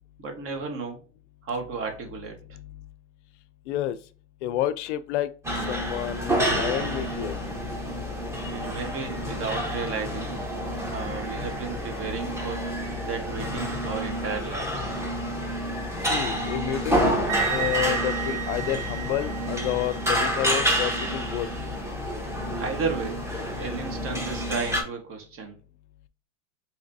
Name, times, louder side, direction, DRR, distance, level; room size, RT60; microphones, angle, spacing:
voice 1, 0.2-1.0 1.4-2.4 8.5-10.3 10.9-12.6 13.0-14.9 22.6-23.2 23.5-25.6, right 5 dB, 35° right, 1.3 m, -33 dB
voice 2, 3.7-4.0 4.4-5.3 5.7-7.3 16.1-17.2 17.5-21.5, left 12 dB, 70° left, 0.5 m, -29 dB
sound 1, 5.4-24.8, equal, 5° right, 1.0 m, -29 dB
Wind instrument woodwind instrument, 17.3-21.1, right 10 dB, 65° right, 0.7 m, -34 dB
5.0 x 2.9 x 2.6 m
supercardioid pair, 120°, 37 cm